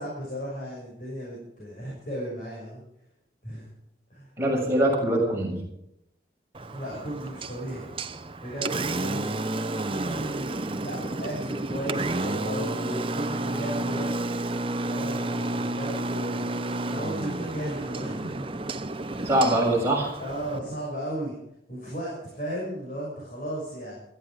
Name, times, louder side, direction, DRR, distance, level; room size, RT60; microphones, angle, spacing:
voice 1, 0.0-2.8 3.4-3.7 4.1-4.3 6.7-7.9 8.4-9.4 9.9-10.3 10.8-14.1 14.9-16.5 16.8-18.4 19.1-19.4 20.2-21.4 21.7-24.0, equal, 45° left, -4 dB, 6.4 m, -35 dB
voice 2, 4.4-5.6 19.2-20.1, right 1 dB, 15° right, -4 dB, 7.3 m, -23 dB
Engine, 6.5-20.6, right 2 dB, 30° right, 0.8 m, -31 dB
17.0 x 14.5 x 5.0 m, 0.80 s
head